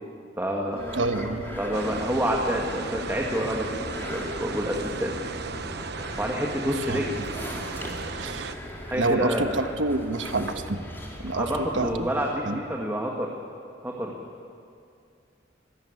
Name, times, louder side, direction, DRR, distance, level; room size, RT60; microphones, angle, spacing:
voice 1, 0.4-0.8 1.6-5.1 6.2-7.2 8.4-8.5 8.8-9.5 11.3-13.3 13.8-14.2, equal, 10° right, -1 dB, 1.8 m, -28 dB
Wind instrument woodwind instrument, 0.7-5.8, equal, 35° right, 1.8 m, -41 dB
sound 1, 0.8-12.2, equal, 10° left, 3.2 m, -39 dB
voice 2, 0.9-1.4 6.9-7.0 8.2-8.5 9.0-10.8 11.2-11.5 11.7-12.1 12.5-12.6, right 2 dB, 85° right, 8 dB, 1.3 m, -27 dB
sound 2, 1.7-8.6, right 4 dB, 60° right, 1.0 m, -36 dB
25.0 x 14.0 x 9.6 m, 2.4 s
head